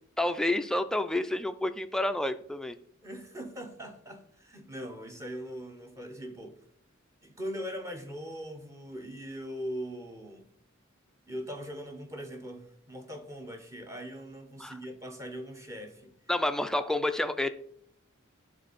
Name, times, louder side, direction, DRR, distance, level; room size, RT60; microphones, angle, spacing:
voice 1, 0.2-2.8 14.6-14.7 16.3-17.5, left 1 dB, 5° left, 0.4 m, -29 dB
voice 2, 3.0-6.6 7.2-10.5 11.3-16.1, equal, 15° right, 1.0 m, -41 dB
11.0 x 3.8 x 4.1 m
head